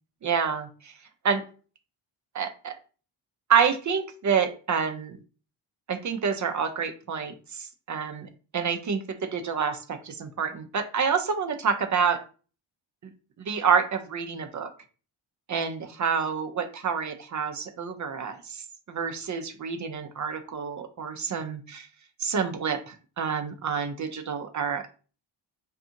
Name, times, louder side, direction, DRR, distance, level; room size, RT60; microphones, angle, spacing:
voice 1, 0.2-0.9 1.2-1.4 2.3-2.7 3.5-5.2 5.9-8.3 8.5-9.0 9.3-12.2 13.4-14.7 15.5-21.9 22.2-24.9, right 6 dB, 40° right, 7 dB, 0.4 m, -28 dB
2.7 x 2.4 x 2.5 m, 0.37 s
cardioid pair, 60°, 50 cm